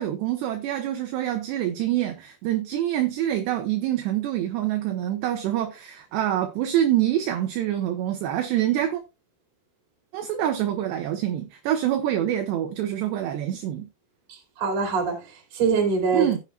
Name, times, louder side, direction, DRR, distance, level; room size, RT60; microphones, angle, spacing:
voice 1, 0.0-9.0 10.1-13.9 16.1-16.4, right 12 dB, 75° right, 2.6 m, -26 dB
voice 2, 14.3-16.3, right 5 dB, 40° right, 2.9 m, -24 dB
15.5 x 7.1 x 2.2 m
omnidirectional pair, 5.8 m